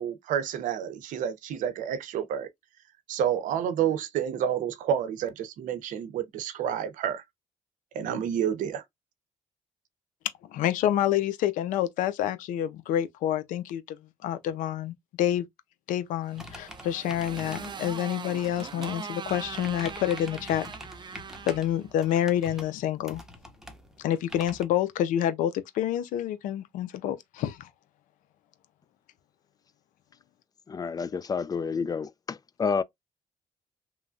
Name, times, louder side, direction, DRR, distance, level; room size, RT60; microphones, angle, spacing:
voice 1, 0.0-2.5 3.1-7.2 7.9-8.8, right 9 dB, 80° right, 0.6 m, -29 dB
voice 2, 10.4-15.5 15.9-20.7 21.5-23.2 24.0-27.7, left 11 dB, 90° left, 0.5 m, -28 dB
Motorcycle, 16.2-22.7, right 6 dB, 35° right, 0.5 m, -41 dB
sound 1, 16.3-24.6, equal, 5° right, 0.8 m, -46 dB
voice 3, 30.7-32.8, left 5 dB, 30° left, 0.4 m, -29 dB
3.0 x 2.2 x 2.5 m
cardioid pair, 85°, 13 cm